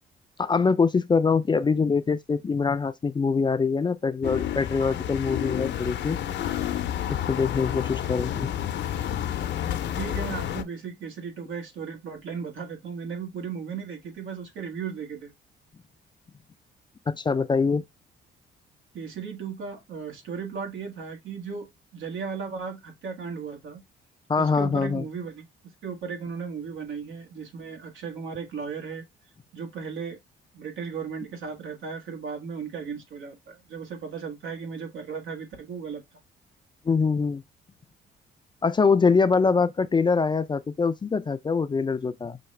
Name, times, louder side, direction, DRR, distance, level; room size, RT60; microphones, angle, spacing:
voice 1, 0.4-6.2 7.1-8.5 17.1-17.8 24.3-25.0 36.9-37.4 38.6-42.4, left 5 dB, 25° left, 0.4 m, -24 dB
sound 1, 4.2-10.6, left 11 dB, 65° left, 0.6 m, -30 dB
voice 2, 9.9-15.3 18.9-21.7 21.9-23.8 24.4-25.5 25.8-29.0 29.5-30.2 30.5-36.0, right 6 dB, 75° right, 1.5 m, -36 dB
5.7 x 2.3 x 3.2 m
cardioid pair, 90°, 20 cm